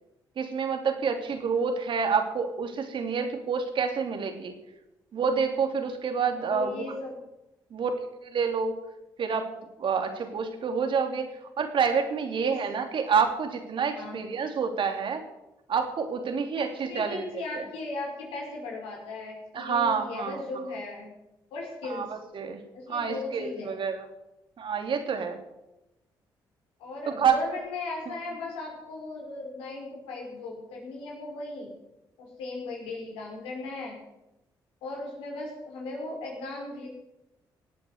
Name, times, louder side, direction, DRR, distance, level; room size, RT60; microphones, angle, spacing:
voice 1, 0.4-4.5 5.1-6.8 7.7-7.9 8.3-8.7 9.2-9.5 9.8-11.3 11.6-15.2 15.7-17.2 19.5-20.4 21.9-22.6 22.9-24.0 24.6-25.4 27.1-27.4, right 6 dB, 65° right, 5 dB, 3.0 m, -28 dB
voice 2, 6.3-7.2 12.3-12.6 13.9-14.2 16.6-21.1 21.5-22.2 22.7-23.8 26.8-31.7 32.2-34.0 34.8-36.9, left 2 dB, 85° left, -1 dB, 5.5 m, -37 dB
17.0 x 8.6 x 8.1 m, 0.93 s
supercardioid pair, 55°, 9 cm